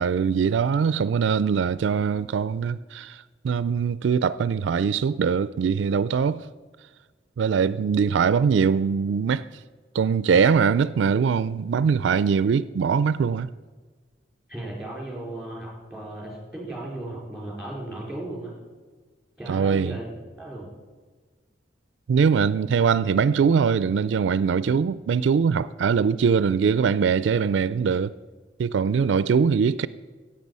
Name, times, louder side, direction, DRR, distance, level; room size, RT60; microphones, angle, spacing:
voice 1, 0.0-6.4 7.4-9.4 9.9-13.5 19.5-20.0 22.1-28.1 28.6-29.9, right 6 dB, 75° right, 0.3 m, -22 dB
voice 2, 14.5-18.5 19.4-20.1 20.4-20.7, right 1 dB, ahead, 4.5 m, -35 dB
16.5 x 7.5 x 5.5 m
head